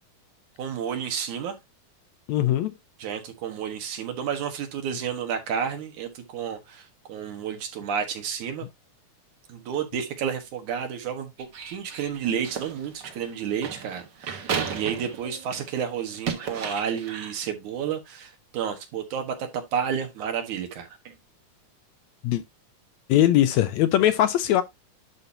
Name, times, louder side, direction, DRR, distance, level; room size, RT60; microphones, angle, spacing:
voice 1, 0.6-1.5 3.0-8.7 9.5-21.1, right 7 dB, 75° right, 2.9 m, -31 dB
voice 2, 2.3-2.7 22.2-22.4 23.1-24.6, left 12 dB, 75° left, 1.8 m, -20 dB
sound 1, 11.4-15.7 16.1-17.4, right 6 dB, 50° right, 1.3 m, -34 dB
11.0 x 5.2 x 2.8 m
omnidirectional pair, 3.6 m